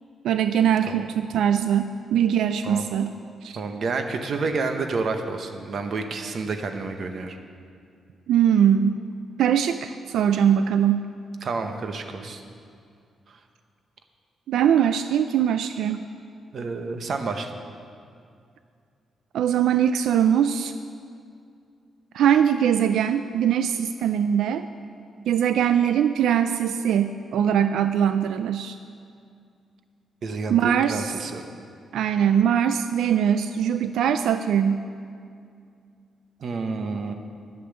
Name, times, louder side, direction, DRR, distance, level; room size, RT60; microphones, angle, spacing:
voice 1, 0.2-3.1 3.4-3.6 8.3-9.0 9.4-11.1 14.5-16.0 19.3-20.7 22.1-24.7 25.3-28.8 30.5-31.1 31.9-34.9, right 9 dB, 85° right, 10 dB, 0.3 m, -21 dB
voice 2, 3.6-7.4 11.4-12.4 13.3-13.4 16.5-17.5 30.2-31.4 36.4-37.1, right 4 dB, 45° right, 6 dB, 0.9 m, -29 dB
10.5 x 8.4 x 7.0 m, 2.3 s
wide cardioid pair, 170°, 0 cm